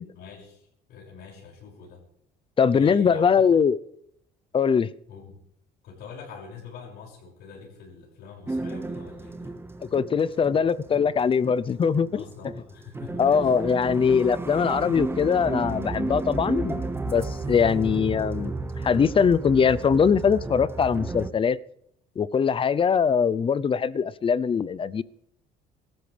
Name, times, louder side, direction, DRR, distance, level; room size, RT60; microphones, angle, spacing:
voice 1, 0.1-2.0 2.7-3.5 5.1-5.4 5.8-9.6 12.1-13.5, left 6 dB, 75° left, -3 dB, 6.4 m, -44 dB
voice 2, 2.6-3.8 4.5-4.9 9.9-12.2 13.2-21.6 22.2-25.0, left 6 dB, 30° left, 19 dB, 0.6 m, -22 dB
sound 1, 8.5-21.3, right 3 dB, 15° right, 0.9 m, -33 dB
25.0 x 13.5 x 3.4 m, 0.71 s
cardioid pair, 110°, 17 cm